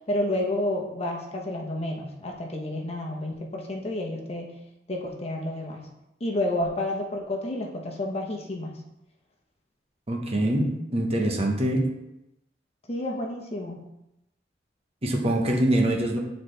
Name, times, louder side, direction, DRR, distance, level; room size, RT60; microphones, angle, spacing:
voice 1, 0.1-4.5 4.9-5.8 6.2-8.8 12.9-13.8, left 1 dB, 35° left, 0 dB, 1.0 m, -30 dB
voice 2, 10.1-11.9 15.0-16.2, right 1 dB, 35° right, 1 dB, 1.0 m, -24 dB
9.5 x 4.1 x 3.3 m, 0.89 s
head